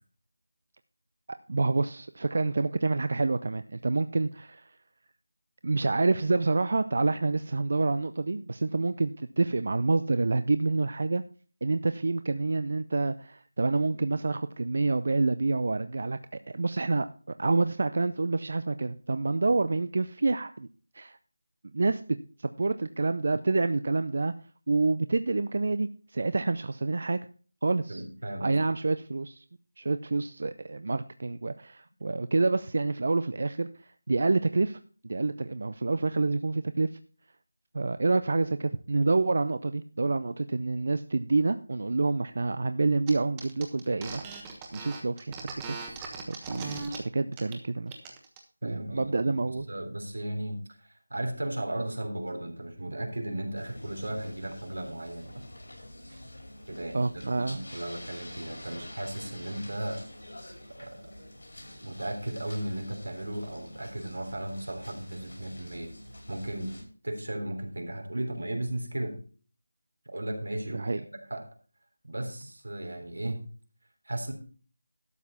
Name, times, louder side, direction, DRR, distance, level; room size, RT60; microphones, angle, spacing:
voice 1, 1.3-4.7 5.6-9.1 9.4-11.2 11.6-16.2 16.5-17.1 17.4-20.7 20.9-21.2 21.7-22.0 22.4-24.3 24.7-27.2 27.6-28.0 28.4-29.4 29.8-34.8 35.0-36.9 37.7-44.3 44.7-45.8 46.3-48.0 48.6-49.7 56.1-56.2 56.9-57.6 70.7-71.0, right 3 dB, 50° right, 11 dB, 0.5 m, -27 dB
voice 2, 27.9-28.6 48.6-50.6 51.1-55.4 56.7-60.0 60.8-61.0 61.8-65.9 66.3-66.8 67.0-69.2 70.1-71.4 72.0-73.4 74.1-74.3, right 1 dB, 85° right, 4 dB, 3.4 m, -35 dB
sound 1, 43.1-43.2 43.4-47.0 47.3-47.6 47.9-48.4, right 4 dB, 10° right, 1.2 m, -39 dB
sound 2, 53.5-66.8, left 1 dB, 80° left, 5.5 m, -47 dB
12.5 x 7.3 x 4.3 m, 0.40 s
figure-of-eight pair, 170°, 0 cm